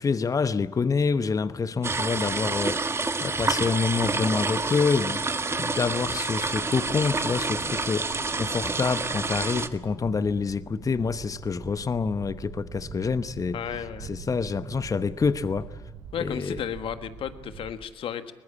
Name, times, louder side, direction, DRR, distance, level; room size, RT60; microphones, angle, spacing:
voice 1, 0.0-5.2 5.6-13.6 14.0-15.8 16.2-16.6, left 5 dB, 35° left, 1.0 m, -27 dB
sound 1, 1.5-17.7, right 6 dB, 80° right, 3.5 m, -45 dB
sound 2, 1.8-9.7, right 3 dB, 25° right, 1.5 m, -28 dB
voice 2, 13.5-14.1 16.1-18.3, left 9 dB, 65° left, 1.5 m, -33 dB
22.5 x 20.0 x 8.7 m
hypercardioid pair, 50°, 10 cm